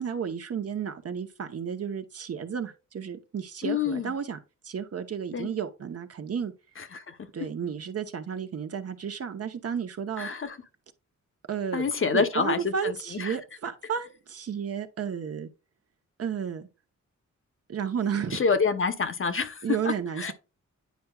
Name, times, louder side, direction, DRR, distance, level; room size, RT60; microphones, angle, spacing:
voice 1, 0.0-4.4 4.6-6.5 7.3-10.3 11.5-15.5 16.2-16.7 17.7-18.4 19.6-20.3, right 7 dB, 50° right, 0.9 m, -32 dB
voice 2, 3.6-4.1 5.3-5.5 6.8-7.2 10.2-10.6 11.7-13.4 18.3-20.3, left 5 dB, 45° left, 0.9 m, -27 dB
9.4 x 4.6 x 2.3 m
cardioid pair, 85°, 30 cm